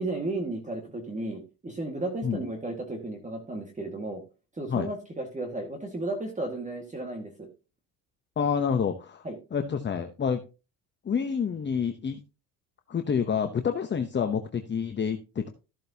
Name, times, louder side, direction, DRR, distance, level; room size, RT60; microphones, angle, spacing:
voice 1, 0.0-4.2 4.6-7.5 9.2-9.4, right 2 dB, 20° right, 3 dB, 1.8 m, -34 dB
voice 2, 8.4-9.2 9.5-10.4 11.0-12.2 12.9-15.5, left 6 dB, 25° left, 6 dB, 0.9 m, -28 dB
13.5 x 7.6 x 2.8 m, 0.31 s
cardioid pair, 120°, 41 cm